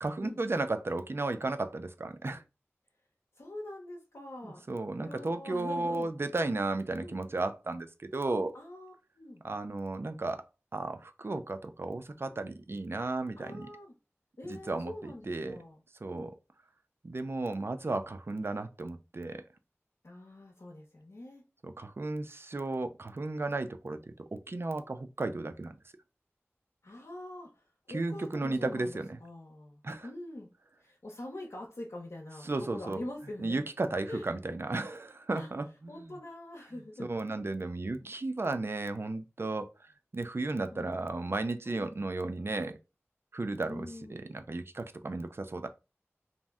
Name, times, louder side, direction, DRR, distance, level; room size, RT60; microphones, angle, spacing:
voice 1, 0.0-2.4 4.4-8.5 9.4-10.4 10.7-13.7 14.4-15.6 16.0-16.3 17.0-19.4 21.6-25.7 27.9-29.2 29.8-30.1 32.4-33.0 33.4-36.2 37.0-39.7 40.1-42.8 43.3-45.7, right 2 dB, 55° right, 0.4 m, -34 dB
voice 2, 3.4-6.1 7.0-7.2 8.5-9.4 13.4-13.9 14.4-15.8 16.1-16.3 20.0-21.4 26.8-30.5 30.8-33.6 34.1-34.3 35.3-35.5 35.9-37.1 40.7-41.0 41.6-41.9 43.6-44.2, left 1 dB, 80° left, 0.6 m, -44 dB
2.6 x 2.0 x 3.4 m
wide cardioid pair, 50°, 5 cm